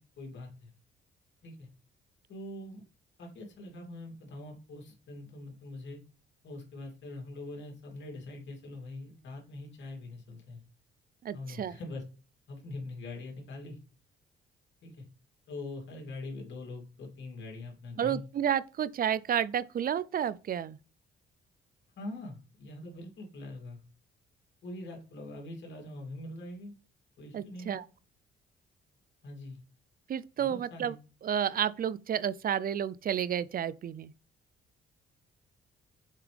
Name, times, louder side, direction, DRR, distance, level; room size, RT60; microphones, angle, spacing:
voice 1, 0.2-0.7 1.4-1.7 2.3-2.8 3.2-6.0 6.4-10.6 11.3-12.0 12.5-13.8 14.8-15.0 15.5-18.3 22.0-23.8 24.6-26.7 27.2-27.8 29.2-29.6 30.4-31.0, left 2 dB, 65° left, 3.0 m, -43 dB
voice 2, 11.2-11.8 18.0-20.8 27.3-27.9 30.1-31.0 31.2-34.1, right 9 dB, 45° right, 0.5 m, -31 dB
7.4 x 4.5 x 3.4 m
cardioid pair, 90°, 20 cm